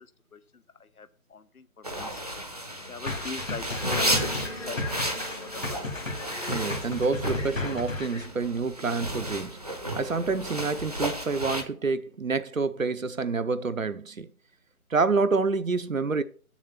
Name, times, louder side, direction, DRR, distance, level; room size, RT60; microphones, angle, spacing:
voice 1, 0.0-2.2 2.9-5.9, left 5 dB, 80° left, 0.9 m, -42 dB
sound 1, 1.8-11.6, right 1 dB, 25° right, 0.8 m, -33 dB
sound 2, 3.1-8.3, left 2 dB, 60° left, 2.1 m, -34 dB
Acoustic guitar / Strum, 3.8-7.6 12.4-12.5, equal, 30° left, 1.0 m, -40 dB
voice 2, 6.5-9.6 10.0-14.3 14.9-16.2, right 4 dB, 65° right, 0.9 m, -28 dB
8.0 x 7.3 x 5.6 m
figure-of-eight pair, 160°, 43 cm